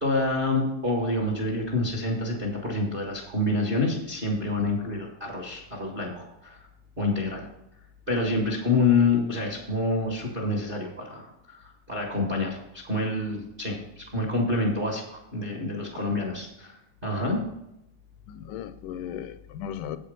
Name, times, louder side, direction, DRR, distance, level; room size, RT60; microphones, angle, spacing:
voice 1, 0.0-6.6 7.0-7.4 8.1-16.7 17.0-17.4, left 2 dB, 30° right, -1 dB, 0.9 m, -27 dB
voice 2, 18.3-20.0, left 9 dB, 85° left, 12 dB, 2.1 m, -37 dB
8.1 x 7.6 x 5.3 m, 0.84 s
omnidirectional pair, 3.7 m